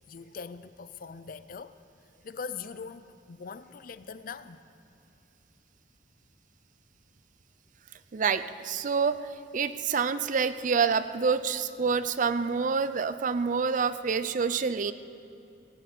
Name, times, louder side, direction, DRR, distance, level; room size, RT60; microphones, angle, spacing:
voice 1, 0.1-1.8 2.2-4.6, left 5 dB, 55° left, 0.5 m, -41 dB
voice 2, 8.1-9.2 9.5-14.9, right 5 dB, 45° right, 0.5 m, -27 dB
17.5 x 7.6 x 8.3 m
head